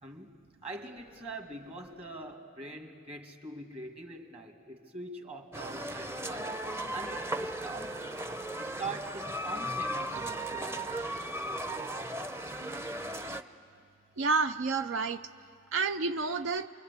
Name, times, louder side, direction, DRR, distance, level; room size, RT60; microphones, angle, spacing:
voice 1, 0.0-8.0 8.6-10.9, right 2 dB, 30° right, 4 dB, 2.0 m, -43 dB
sound 1, 5.5-13.4, right 1 dB, 15° right, 0.7 m, -36 dB
voice 2, 14.2-15.2 15.7-16.7, right 4 dB, 70° right, 10 dB, 0.6 m, -29 dB
29.5 x 23.5 x 8.2 m, 2.4 s
head